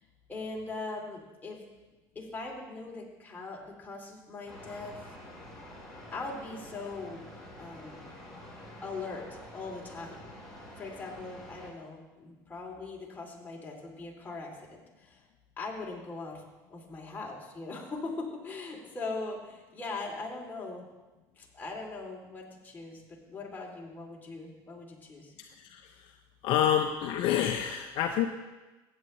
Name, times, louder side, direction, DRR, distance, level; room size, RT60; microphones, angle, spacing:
voice 1, 0.3-1.6 2.1-5.0 6.1-7.3 7.6-8.1 8.8-10.2 10.8-15.2 15.6-16.4 16.7-20.9 21.4-25.3, left 3 dB, 20° left, -2 dB, 2.9 m, -40 dB
sound 1, 4.5-11.7, left 1 dB, 5° left, 3.9 m, -48 dB
voice 2, 25.4-25.9 26.4-28.3, left 10 dB, 65° left, 5 dB, 0.7 m, -28 dB
15.5 x 8.8 x 3.2 m, 1.1 s
supercardioid pair, 100°, 9 cm